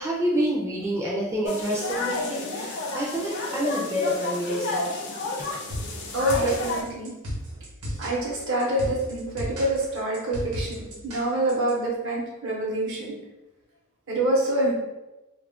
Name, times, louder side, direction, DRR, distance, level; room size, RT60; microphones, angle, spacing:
voice 1, 0.0-4.9 5.4-5.5, equal, 10° right, -5 dB, 0.4 m, -28 dB
sound 1, 1.4-6.8, left 2 dB, 55° left, 0.5 m, -31 dB
sound 2, 5.7-11.7, equal, 90° right, 1.0 m, -34 dB
voice 2, 6.1-7.1 8.0-13.2 14.1-14.7, right 1 dB, 65° right, -3 dB, 0.8 m, -26 dB
2.3 x 2.1 x 3.5 m, 1.0 s
head